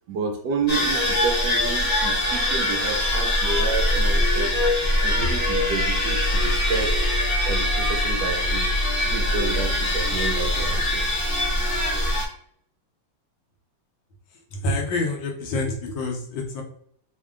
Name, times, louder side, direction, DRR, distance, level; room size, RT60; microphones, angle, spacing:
voice 1, 0.1-7.1 7.5-8.7 9.1-11.0, right 4 dB, 75° right, 3 dB, 1.1 m, -30 dB
sound 1, 0.7-12.2, left 1 dB, 55° left, 0.6 m, -22 dB
voice 2, 14.5-16.6, left 2 dB, 75° left, 1 dB, 1.5 m, -27 dB
3.6 x 2.1 x 3.5 m, 0.64 s
omnidirectional pair, 2.1 m